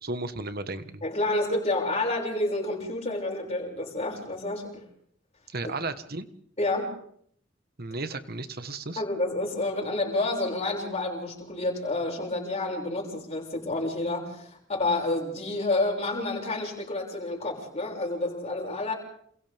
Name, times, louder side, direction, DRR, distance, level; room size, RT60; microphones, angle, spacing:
voice 1, 0.0-1.0 5.5-6.3 7.8-9.0, right 2 dB, 50° right, 10 dB, 1.5 m, -34 dB
voice 2, 1.0-4.9 5.6-5.7 6.6-6.9 9.0-18.9, left 2 dB, 35° left, -1 dB, 6.6 m, -29 dB
28.5 x 27.5 x 3.6 m, 0.65 s
head